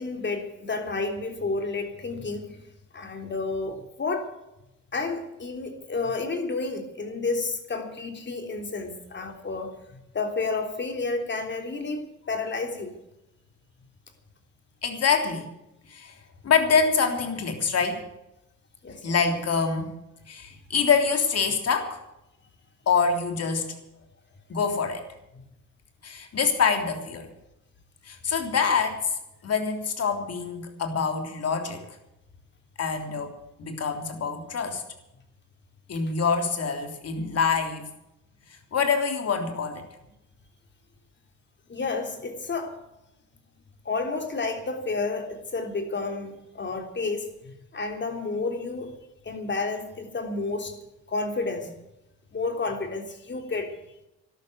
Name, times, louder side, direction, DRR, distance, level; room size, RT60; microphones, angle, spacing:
voice 1, 0.0-2.6 2.9-4.3 4.9-12.9 18.8-19.1 41.7-42.7 43.9-48.9 49.2-50.8 51.1-51.7 52.3-53.7, left 3 dB, 35° left, 5 dB, 3.5 m, -31 dB
voice 2, 14.8-15.5 15.9-16.2 16.4-18.0 19.0-20.0 20.3-22.0 22.9-23.8 24.5-25.0 26.0-27.3 28.0-29.1 29.4-31.8 32.8-33.3 33.6-34.8 35.9-37.8 38.5-39.8, left 5 dB, 55° left, 5 dB, 3.4 m, -25 dB
12.5 x 12.5 x 8.2 m, 0.89 s
cardioid pair, 90°, 30 cm